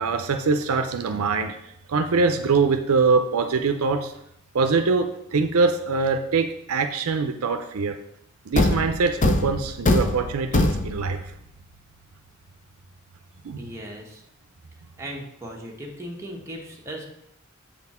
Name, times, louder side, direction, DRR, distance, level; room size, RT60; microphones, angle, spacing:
voice 1, 0.0-1.6 1.9-4.1 4.5-7.9 8.5-11.2 13.4-13.7, right 4 dB, 75° right, 7 dB, 0.5 m, -23 dB
Thump thud, 8.5-11.2, left 2 dB, 35° left, 0.6 m, -22 dB
voice 2, 13.6-14.2 15.0-17.0, equal, 15° right, -2 dB, 1.2 m, -37 dB
7.4 x 4.2 x 4.2 m, 0.76 s
head